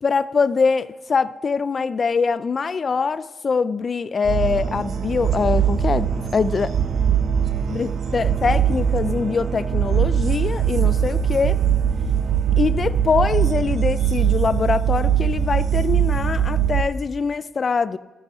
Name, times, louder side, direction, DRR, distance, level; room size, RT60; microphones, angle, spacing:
voice 1, 0.0-6.7 7.7-11.6 12.6-18.0, left 5 dB, 35° left, 0.4 m, -23 dB
sound 1, 4.2-16.8, right 8 dB, 55° right, 0.9 m, -21 dB
12.5 x 9.7 x 9.9 m
cardioid pair, 135°, 0 cm